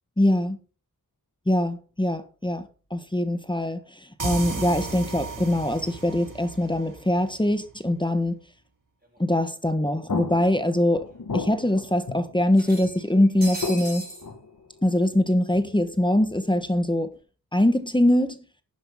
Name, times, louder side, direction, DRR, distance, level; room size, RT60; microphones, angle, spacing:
voice 1, 0.2-0.6 1.5-8.4 9.2-11.1 11.3-14.1 14.8-17.1 17.5-18.4, left 1 dB, 10° left, 1.3 m, -23 dB
sound 1, 2.0-2.1 10.1-16.1, left 5 dB, 60° left, 1.9 m, -37 dB
sound 2, 4.2-7.7, right 4 dB, 55° right, 2.4 m, -35 dB
sound 3, 9.1-9.2 9.5-9.6 10.7-10.8 11.1-11.2 12.5-14.3, right 1 dB, 25° right, 6.8 m, -38 dB
12.0 x 10.0 x 3.7 m
wide cardioid pair, 70°, 38 cm